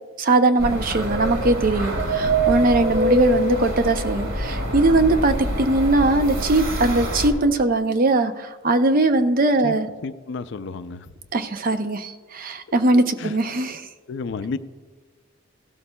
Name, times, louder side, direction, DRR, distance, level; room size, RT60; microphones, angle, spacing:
voice 1, 0.2-9.9 11.3-13.9, right 2 dB, 45° right, 9 dB, 0.6 m, -20 dB
sound 1, 0.6-7.3, right 1 dB, 75° right, 2.0 m, -25 dB
voice 2, 10.0-11.1 12.9-13.3 14.1-14.6, left 4 dB, 60° left, 12 dB, 0.4 m, -31 dB
17.0 x 12.5 x 2.2 m, 1.4 s
head